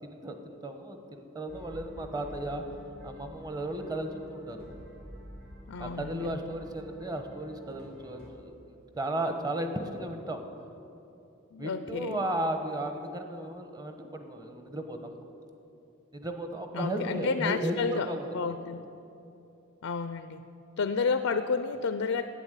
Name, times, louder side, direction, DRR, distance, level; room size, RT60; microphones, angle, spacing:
voice 1, 0.0-2.6 3.0-4.7 5.8-8.6 8.9-10.4 11.6-15.1 16.1-18.6, right 1 dB, 20° right, 6 dB, 1.0 m, -35 dB
sound 1, 1.5-8.3, equal, 75° right, 3.5 m, -49 dB
voice 2, 5.7-6.4 11.5-12.2 16.7-18.9 19.8-20.4 20.8-22.2, left 5 dB, 75° left, 11 dB, 0.5 m, -31 dB
11.5 x 9.0 x 8.2 m, 2.8 s
head